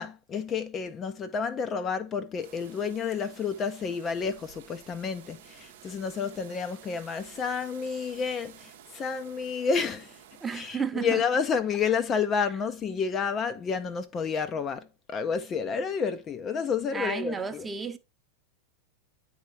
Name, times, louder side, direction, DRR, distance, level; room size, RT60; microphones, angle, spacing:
voice 1, 0.0-10.2 10.5-17.7, left 6 dB, 25° left, 0.5 m, -30 dB
sound 1, 2.4-10.8, right 10 dB, 55° right, 0.7 m, -52 dB
voice 2, 10.4-11.2 16.9-18.0, right 6 dB, 15° right, 0.8 m, -32 dB
9.5 x 3.6 x 4.4 m
figure-of-eight pair, 90°, 0 cm